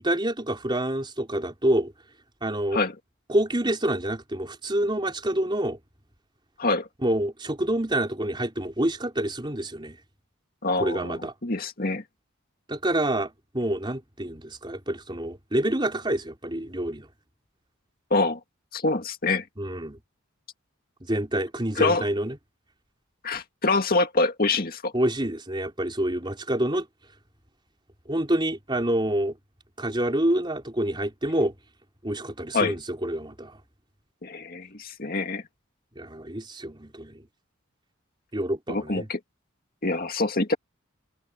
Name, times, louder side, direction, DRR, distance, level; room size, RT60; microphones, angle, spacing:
voice 1, 0.0-1.9 2.4-2.8 3.3-5.8 7.0-10.0 10.8-11.3 12.7-17.1 19.6-20.0 21.1-22.4 24.9-26.9 28.1-29.4 29.8-31.5 32.0-33.6 36.0-37.2 38.3-39.1, right 1 dB, 20° right, 4.0 m, -27 dB
voice 2, 10.6-12.0 18.1-18.4 18.7-19.4 21.8-22.1 23.2-24.9 32.5-32.7 34.2-35.4 38.7-39.2 39.8-40.6, left 3 dB, 45° left, 2.1 m, -25 dB
head